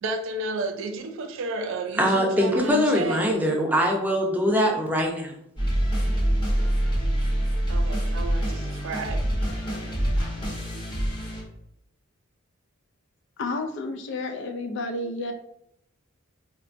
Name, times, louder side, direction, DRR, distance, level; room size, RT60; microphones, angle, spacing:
voice 1, 0.0-3.3 7.7-9.3, right 2 dB, 65° right, 0.4 m, -32 dB
voice 2, 2.0-5.3, equal, 10° right, 0.5 m, -22 dB
sound 1, 5.6-11.4, equal, 20° left, 0.8 m, -25 dB
voice 3, 13.4-15.3, left 2 dB, 55° left, 0.4 m, -31 dB
3.8 x 2.2 x 2.5 m
head